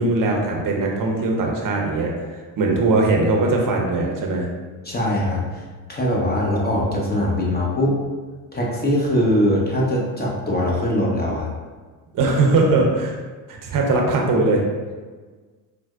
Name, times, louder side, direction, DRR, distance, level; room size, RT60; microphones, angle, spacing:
voice 1, 0.0-2.1 2.6-4.5 12.1-13.1 13.5-14.6, right 2 dB, 45° right, 0 dB, 0.8 m, -20 dB
voice 2, 4.8-5.6 5.9-8.0 8.5-11.5, left 1 dB, 20° left, -3 dB, 0.9 m, -21 dB
4.4 x 2.2 x 2.4 m, 1.4 s
supercardioid pair, 65°, 47 cm